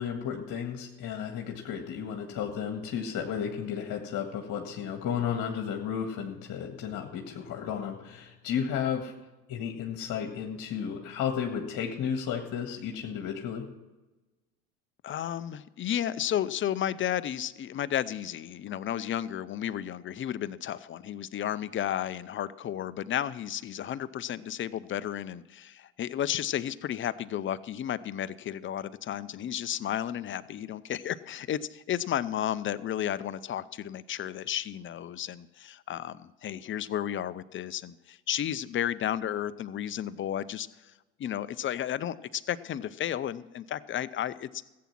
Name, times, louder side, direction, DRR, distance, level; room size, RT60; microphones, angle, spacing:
voice 1, 0.0-9.1 9.5-13.6, left 8 dB, 45° left, 3 dB, 1.8 m, -33 dB
voice 2, 15.0-40.7 41.2-44.5, left 10 dB, 30° left, 16 dB, 0.6 m, -33 dB
15.0 x 8.5 x 6.0 m, 1.1 s
hypercardioid pair, 75°, 43 cm